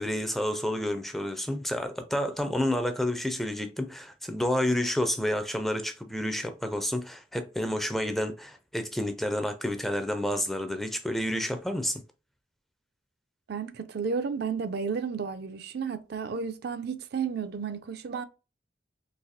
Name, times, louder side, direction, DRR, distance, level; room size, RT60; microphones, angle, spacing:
voice 1, 0.0-12.0, left 1 dB, ahead, 0.4 m, -30 dB
voice 2, 13.5-18.2, right 5 dB, 60° right, 0.4 m, -32 dB
4.0 x 2.6 x 2.6 m
head